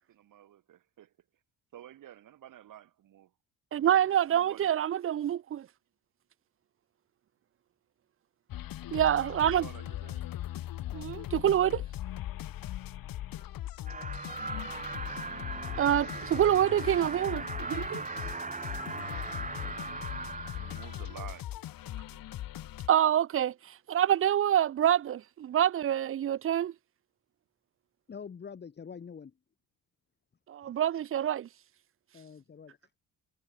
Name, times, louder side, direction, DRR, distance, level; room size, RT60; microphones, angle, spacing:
voice 1, 0.1-1.1 1.7-3.3 4.0-4.7 9.6-10.2 19.5-20.0 20.5-21.5 21.9-22.2, right 12 dB, 65° right, 2.6 m, -51 dB
voice 2, 3.7-5.7 8.9-9.7 10.9-11.9 15.8-18.0 22.9-26.7 30.5-31.5, right 10 dB, 40° right, 0.5 m, -26 dB
sound 1, 8.5-22.9, left 13 dB, 80° left, 3.2 m, -40 dB
sound 2, 13.9-21.4, right 4 dB, 20° right, 2.9 m, -39 dB
voice 3, 28.1-29.3 30.6-30.8 32.1-32.8, left 6 dB, 30° left, 1.3 m, -45 dB
cardioid pair, 125°, 34 cm